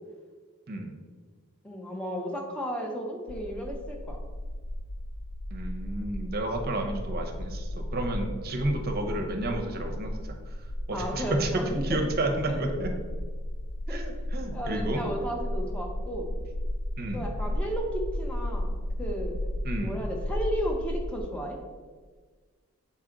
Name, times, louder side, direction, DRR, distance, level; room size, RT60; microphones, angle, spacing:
voice 1, 1.6-4.2 7.1-7.2 10.9-12.0 12.5-12.6 13.9-14.0 14.5-16.3 17.1-19.4 19.8-21.6, equal, 5° left, 0 dB, 0.7 m, -34 dB
sound 1, 3.3-21.2, left 1 dB, 50° left, 0.4 m, -34 dB
voice 2, 5.5-10.6 10.9-12.9 13.9-15.0 17.0-17.3 19.6-20.0, right 1 dB, 45° right, 4 dB, 0.7 m, -31 dB
6.1 x 4.3 x 3.8 m, 1.5 s
head